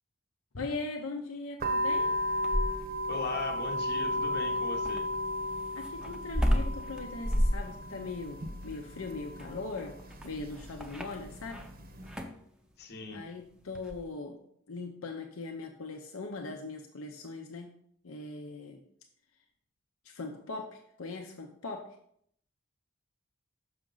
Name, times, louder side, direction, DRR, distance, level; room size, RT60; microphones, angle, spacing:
voice 1, 0.6-2.2 5.7-10.0 10.2-11.7 13.1-14.4 14.7-17.7 18.0-18.8 20.0-22.0, left 3 dB, 80° left, 2 dB, 0.7 m, -40 dB
sound 1, 1.6-12.2, left 1 dB, 45° right, 0.7 m, -35 dB
sound 2, 2.2-3.1 4.8-11.7 12.0-12.4 13.7-14.0, equal, 5° right, 0.5 m, -32 dB
voice 2, 3.1-5.0 12.8-13.2, left 2 dB, 50° left, 3 dB, 0.8 m, -38 dB
6.3 x 5.8 x 3.9 m, 0.68 s
head